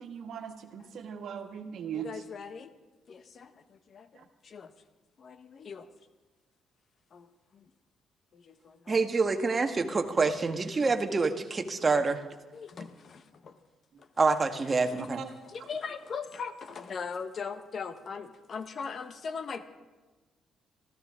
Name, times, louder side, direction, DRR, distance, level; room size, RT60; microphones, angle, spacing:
voice 1, 0.0-2.2 4.1-4.2 14.9-15.3, right 8 dB, 70° right, 5 dB, 1.7 m, -39 dB
voice 2, 1.9-2.7 3.1-4.7 5.2-5.9 7.1-7.3 7.5-7.6 8.3-8.9 9.8-9.9 11.7-12.0 12.5-13.6 14.0-14.1 14.8-15.0 15.5-19.6, left 5 dB, 50° left, 10 dB, 1.0 m, -40 dB
voice 3, 8.9-12.2 14.2-15.2, right 4 dB, 30° right, 6 dB, 1.5 m, -27 dB
26.0 x 15.0 x 3.7 m, 1.2 s
cardioid pair, 90°, 0 cm